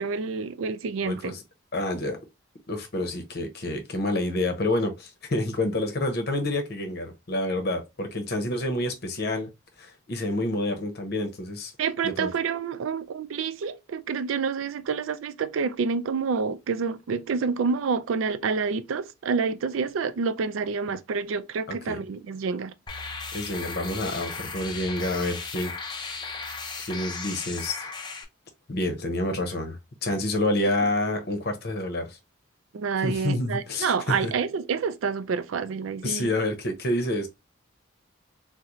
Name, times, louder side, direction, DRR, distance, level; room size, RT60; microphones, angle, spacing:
voice 1, 0.0-1.4 11.8-22.7 32.7-36.3, right 5 dB, 85° right, 0.4 m, -28 dB
voice 2, 1.0-1.4 1.7-2.3 2.7-9.5 9.8-11.7 12.0-12.3 21.7-22.0 23.3-25.7 26.0-26.2 26.8-27.9 28.7-32.2 33.0-34.3 36.0-37.3, left 1 dB, 55° left, 0.8 m, -28 dB
sound 1, 22.9-28.2, left 4 dB, 20° left, 0.5 m, -36 dB
3.9 x 2.1 x 2.9 m
head